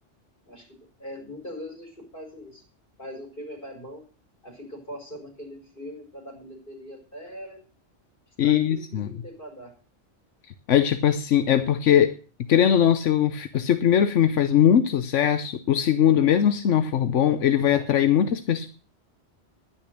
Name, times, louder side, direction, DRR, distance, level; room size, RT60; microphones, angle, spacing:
voice 1, 1.0-2.6 3.0-4.0 4.4-7.6 8.4-9.7, equal, 45° left, 2 dB, 5.1 m, -41 dB
voice 2, 8.4-9.1 10.7-12.1 12.5-18.7, left 9 dB, 85° left, 9 dB, 1.1 m, -20 dB
10.5 x 10.0 x 6.5 m, 0.38 s
omnidirectional pair, 1.2 m